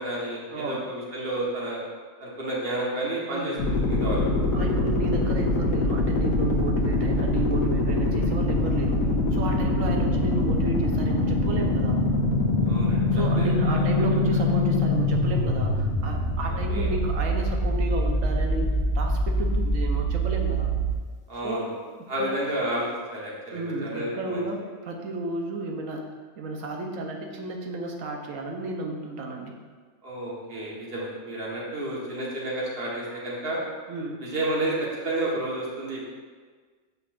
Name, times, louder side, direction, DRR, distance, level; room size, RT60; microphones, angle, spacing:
voice 1, 0.0-1.8 2.2-4.2 12.6-13.0 13.3-13.9 16.5-16.9 21.3-21.7 22.1-22.8 23.1-24.4 30.0-33.6 34.2-36.0, right 1 dB, 45° right, -5 dB, 1.5 m, -31 dB
voice 2, 0.5-0.8 3.3-3.6 4.5-9.0 9.3-12.0 13.1-20.7 21.4-21.7 22.2-22.4 23.5-26.0 26.4-29.5 33.9-34.2, right 2 dB, 75° right, 2 dB, 1.2 m, -32 dB
sound 1, 3.6-20.9, left 1 dB, 85° left, 1.2 m, -24 dB
7.9 x 5.6 x 2.5 m, 1.5 s
omnidirectional pair, 1.4 m